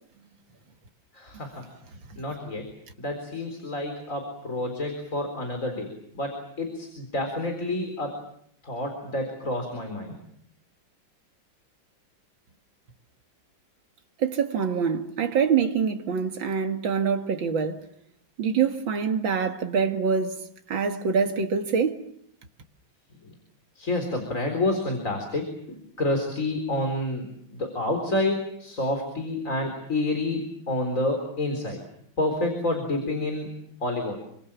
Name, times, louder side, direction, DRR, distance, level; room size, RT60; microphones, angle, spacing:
voice 1, 1.1-1.6 2.2-2.6 3.0-8.2 8.6-10.2 23.8-31.8 32.2-33.5 33.8-34.2, left 1 dB, 40° left, 4.6 m, -29 dB
voice 2, 14.2-17.8 18.4-20.4 20.7-22.0, right 6 dB, 75° right, 2.6 m, -25 dB
28.0 x 25.5 x 7.2 m
omnidirectional pair, 2.1 m